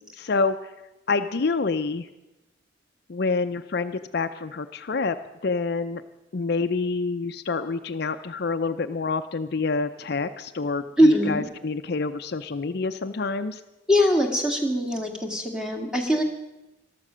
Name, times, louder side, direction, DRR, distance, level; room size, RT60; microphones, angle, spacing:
voice 1, 0.2-0.6 1.1-2.1 3.1-5.2 5.4-6.0 6.3-13.6, left 4 dB, 55° left, 9 dB, 0.5 m, -27 dB
voice 2, 11.0-11.5 13.9-16.2, equal, 5° right, 1 dB, 1.7 m, -22 dB
14.0 x 12.5 x 6.2 m, 0.99 s
head